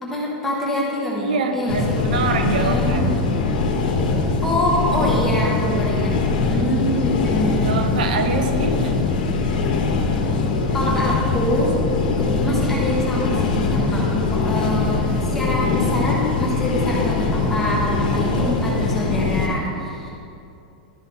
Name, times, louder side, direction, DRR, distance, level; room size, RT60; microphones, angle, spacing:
voice 1, 0.0-2.0 2.6-3.1 4.4-7.8 10.7-11.8 12.2-20.1, left 1 dB, 5° left, -5 dB, 1.0 m, -25 dB
voice 2, 1.2-3.2 7.6-9.0, right 5 dB, 80° right, 6 dB, 0.9 m, -25 dB
sound 1, 1.7-19.5, left 3 dB, 80° left, 1.2 m, -22 dB
11.5 x 4.1 x 5.5 m, 2.6 s
supercardioid pair, 180°, 5 cm